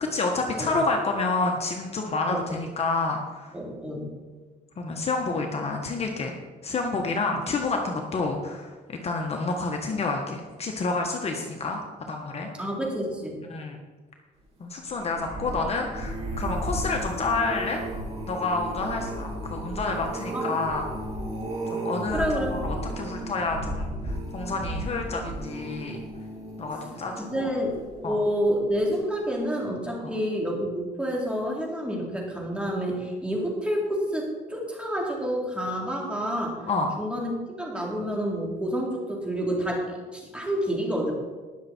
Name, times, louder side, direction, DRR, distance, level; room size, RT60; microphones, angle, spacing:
voice 1, 0.1-3.5 4.8-6.3 6.6-11.8 12.1-12.5 13.5-13.8 14.6-17.8 18.3-20.8 21.7-26.0 26.6-27.5 28.0-28.2 30.0-30.2 36.7-36.9, left 3 dB, 40° left, 2 dB, 1.4 m, -29 dB
voice 2, 3.5-4.1 12.6-13.4 20.3-20.5 22.1-22.6 27.1-36.6 37.0-37.3 37.6-41.1, equal, 5° right, -2 dB, 3.6 m, -29 dB
sound 1, 14.8-28.2 28.7-29.0 29.3-29.4, right 1 dB, 35° right, 4.1 m, -34 dB
19.0 x 6.8 x 4.5 m, 1.3 s
cardioid pair, 110°, 17 cm